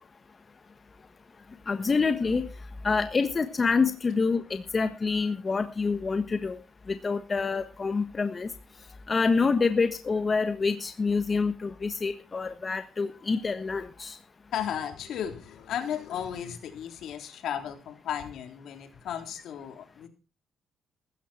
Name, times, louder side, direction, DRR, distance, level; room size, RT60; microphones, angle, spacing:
voice 1, 1.7-2.5 2.8-6.6 6.9-8.5 9.1-14.2, left 4 dB, 35° left, 9 dB, 1.4 m, -27 dB
voice 2, 14.5-20.1, left 9 dB, 75° left, 6 dB, 3.5 m, -35 dB
15.5 x 13.5 x 4.4 m, 0.32 s
cardioid pair, 90°, 0 cm